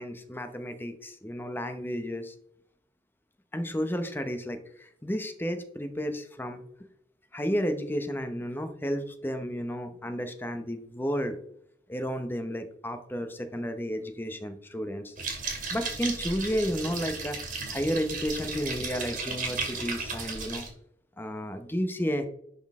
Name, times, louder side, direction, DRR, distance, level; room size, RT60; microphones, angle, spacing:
voice 1, 0.0-2.3 3.5-6.6 7.3-11.4 11.9-15.1 15.7-17.4 17.7-20.7 21.2-22.3, equal, 10° left, 7 dB, 0.8 m, -32 dB
sound 1, 15.2-20.7, right 4 dB, 45° right, 2.0 m, -35 dB
11.0 x 4.1 x 3.6 m, 0.69 s
head